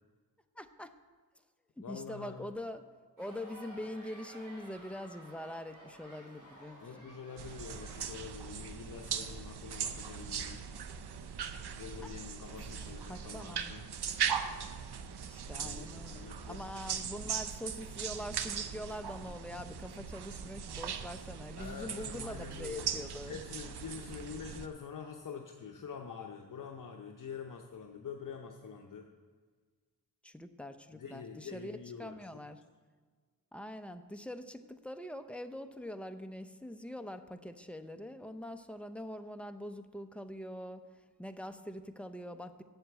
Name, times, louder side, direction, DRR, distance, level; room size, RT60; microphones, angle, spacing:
voice 1, 0.6-0.9 1.8-2.8 3.2-7.1 12.0-12.1 13.1-13.7 15.3-23.4 30.2-32.6 33.5-40.8 41.2-42.6, left 1 dB, 5° left, 8 dB, 0.6 m, -44 dB
voice 2, 1.8-2.5 6.8-10.6 11.7-13.9 15.6-16.6 21.6-29.1 30.9-32.4, left 6 dB, 55° left, 2 dB, 0.8 m, -46 dB
sound 1, 3.2-8.2, right 1 dB, 50° right, 3.6 m, -54 dB
sound 2, 7.4-24.7, right 7 dB, 85° right, 0.7 m, -39 dB
8.0 x 7.3 x 8.0 m, 1.5 s
wide cardioid pair, 80°, 38 cm